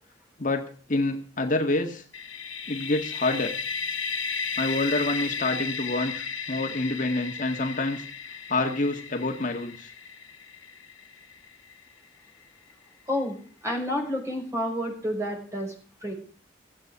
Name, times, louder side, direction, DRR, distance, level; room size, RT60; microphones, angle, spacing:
voice 1, 0.4-2.0 2.7-3.5 4.6-8.0 8.5-9.9, left 2 dB, 45° left, 4 dB, 1.7 m, -27 dB
sound 1, 2.1-11.8, left 5 dB, 80° left, 1.4 m, -34 dB
voice 2, 13.6-15.7 16.0-16.1, equal, 15° right, 1 dB, 5.7 m, -29 dB
16.5 x 8.3 x 8.2 m, 0.41 s
head